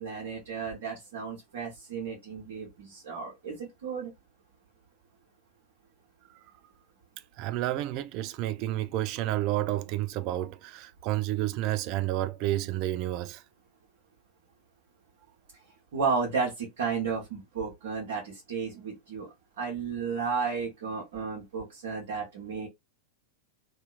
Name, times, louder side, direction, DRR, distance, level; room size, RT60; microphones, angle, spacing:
voice 1, 0.0-4.1 15.9-22.7, right 5 dB, 60° right, 1.0 m, -33 dB
voice 2, 7.4-13.4, right 14 dB, 40° right, 0.3 m, -30 dB
2.7 x 2.5 x 2.4 m
figure-of-eight pair, 90°, 0 cm